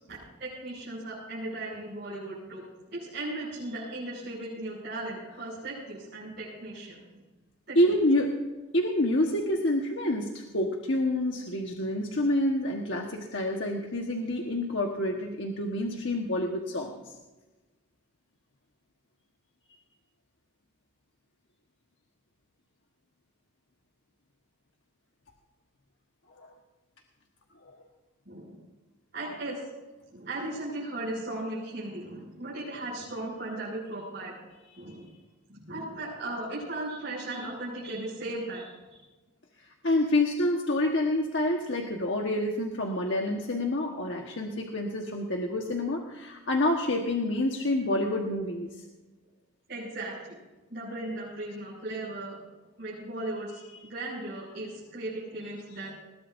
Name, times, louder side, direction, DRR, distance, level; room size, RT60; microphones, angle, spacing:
voice 1, 0.4-2.6 2.9-7.0 7.7-7.8 28.2-28.6 29.1-29.7 30.1-34.3 34.8-35.1 35.5-39.0 49.7-50.4 50.7-52.4 52.8-55.9, right 2 dB, 50° right, -8 dB, 6.5 m, -37 dB
voice 2, 7.7-8.4 8.7-16.9 26.4-26.5 34.7-34.8 39.8-48.7, left 1 dB, 60° left, 1 dB, 1.4 m, -27 dB
21.0 x 19.5 x 2.6 m, 1.2 s
head